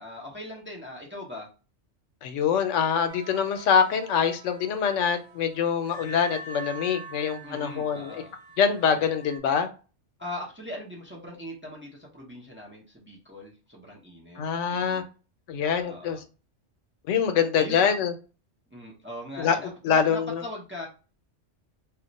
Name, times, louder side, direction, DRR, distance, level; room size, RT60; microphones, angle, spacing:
voice 1, 0.0-1.5 7.4-8.3 8.9-9.1 10.2-15.1 15.8-16.2 17.6-17.9 18.7-20.9, left 1 dB, 15° right, 0.5 m, -40 dB
voice 2, 2.2-8.2 8.6-9.7 14.4-15.0 15.5-16.2 17.1-18.1 19.4-19.6 19.8-20.4, left 7 dB, 90° left, 0.9 m, -24 dB
sound 1, 3.1-9.4, right 3 dB, 75° right, 1.1 m, -44 dB
2.4 x 2.1 x 3.9 m
omnidirectional pair, 1.2 m